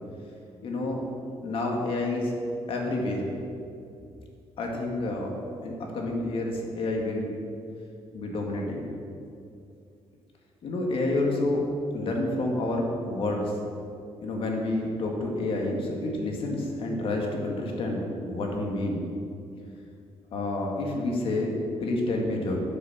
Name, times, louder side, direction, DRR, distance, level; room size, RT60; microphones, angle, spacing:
voice 1, 0.6-1.0 1.4-2.3 2.7-3.3 4.6-7.3 8.1-8.8 10.6-11.6 11.9-13.6 14.2-19.1 20.3-21.5 21.8-22.6, left 2 dB, 50° left, 0 dB, 1.7 m, -29 dB
10.5 x 6.4 x 7.0 m, 2.5 s
cardioid pair, 175°, 11 cm